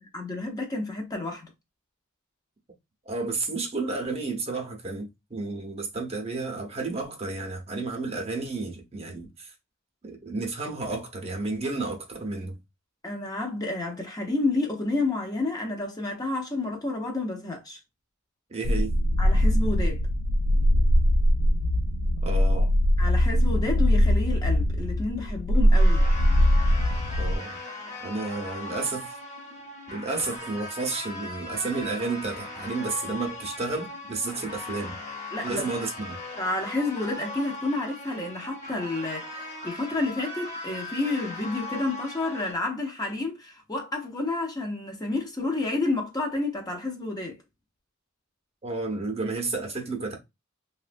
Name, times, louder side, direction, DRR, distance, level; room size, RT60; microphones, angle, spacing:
voice 1, 0.1-1.5 13.0-17.8 19.2-20.0 23.0-26.0 35.3-35.7 36.4-47.4, left 2 dB, 20° left, 0.6 m, -30 dB
voice 2, 3.1-9.5 10.0-12.6 18.5-18.9 22.2-22.7 27.2-27.6 28.0-29.2 29.9-35.0 35.4-36.2 48.6-50.2, right 3 dB, 30° right, 0.7 m, -31 dB
sound 1, 18.6-27.4, equal, 85° left, 0.3 m, -21 dB
sound 2, 25.7-42.5, left 2 dB, 35° left, 0.9 m, -39 dB
3.0 x 2.2 x 2.5 m
head